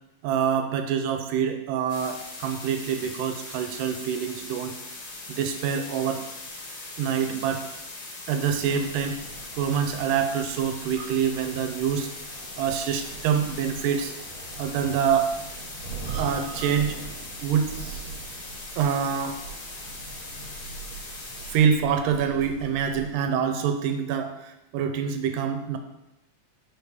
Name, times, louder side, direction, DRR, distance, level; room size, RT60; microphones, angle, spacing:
voice 1, 0.2-4.7 5.4-6.2 7.0-7.7 8.3-9.2 9.6-12.1 12.6-14.1 14.6-15.4 16.1-17.0 17.4-18.1 18.8-19.4 21.5-25.8, right 7 dB, 80° right, 7 dB, 2.1 m, -26 dB
sound 1, 1.9-21.6, left 2 dB, 60° left, 2.4 m, -40 dB
sound 2, 8.4-23.1, right 4 dB, 55° right, 2.2 m, -42 dB
5.3 x 5.0 x 4.6 m, 0.91 s
omnidirectional pair, 3.9 m